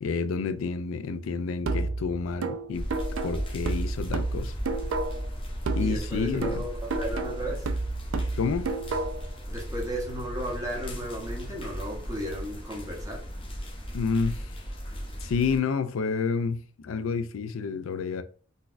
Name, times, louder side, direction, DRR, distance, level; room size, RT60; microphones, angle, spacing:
voice 1, 0.0-2.9 3.2-4.5 5.8-6.6 8.4-8.7 13.9-14.5 15.2-18.2, left 5 dB, 80° left, 0.4 m, -29 dB
sound 1, 1.7-5.3 5.7-9.3, right 3 dB, 70° right, 0.4 m, -31 dB
sound 2, 2.7-15.6, equal, 25° left, 0.6 m, -36 dB
voice 2, 5.8-7.7 9.5-13.3, equal, 15° right, 0.9 m, -35 dB
3.9 x 2.3 x 2.5 m
head